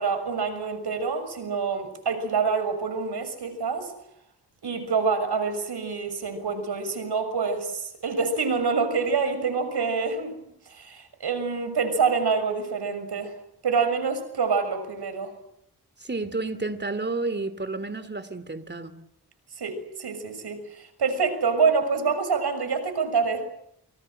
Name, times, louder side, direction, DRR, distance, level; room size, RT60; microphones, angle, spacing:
voice 1, 0.0-3.9 4.6-13.3 13.6-15.3 19.6-23.4, right 5 dB, 80° right, 6.4 m, -26 dB
voice 2, 16.0-18.9, right 3 dB, 25° right, 2.9 m, -31 dB
29.5 x 25.5 x 7.8 m
wide cardioid pair, 80°, 39 cm